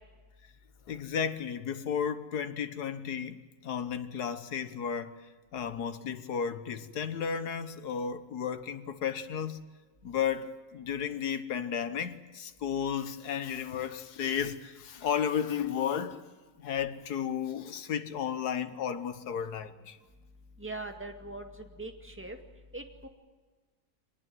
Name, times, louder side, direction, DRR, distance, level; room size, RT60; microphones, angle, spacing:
voice 1, 0.9-5.2 5.5-9.6 10.0-16.2 16.6-20.0, left 8 dB, 85° left, 1.7 m, -33 dB
voice 2, 20.6-22.4 22.7-23.1, right 2 dB, 10° right, 2.1 m, -41 dB
23.5 x 19.5 x 9.2 m
omnidirectional pair, 1.6 m